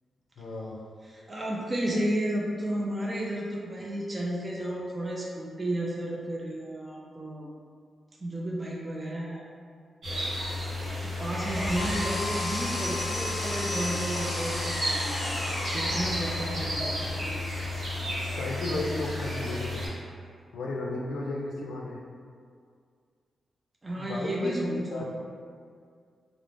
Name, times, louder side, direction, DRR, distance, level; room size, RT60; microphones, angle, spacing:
voice 1, 0.4-0.8 18.4-19.9 20.5-22.0 24.0-25.0, left 2 dB, 80° left, -1 dB, 0.4 m, -34 dB
voice 2, 1.0-7.5 8.2-9.4 11.0-15.4 15.6-17.1 23.8-25.0, right 1 dB, 25° right, -3 dB, 0.3 m, -32 dB
sound 1, 10.0-19.9, left 1 dB, 70° right, 0.8 m, -33 dB
Power tool, 10.9-16.9, equal, 5° right, 0.7 m, -34 dB
sound 2, 11.8-18.3, left 6 dB, 25° left, 0.5 m, -42 dB
2.4 x 2.0 x 3.1 m, 2.2 s
cardioid pair, 105°, 0 cm